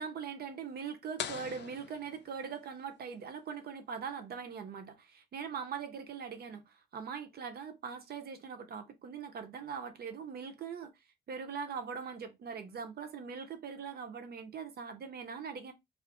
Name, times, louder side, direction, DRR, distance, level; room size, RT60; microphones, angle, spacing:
voice 1, 0.0-10.9 11.3-15.7, right 6 dB, 55° right, 0.6 m, -41 dB
sound 1, 1.2-2.9, left 9 dB, 65° left, 0.4 m, -43 dB
2.4 x 2.4 x 3.6 m
wide cardioid pair, 150°, 19 cm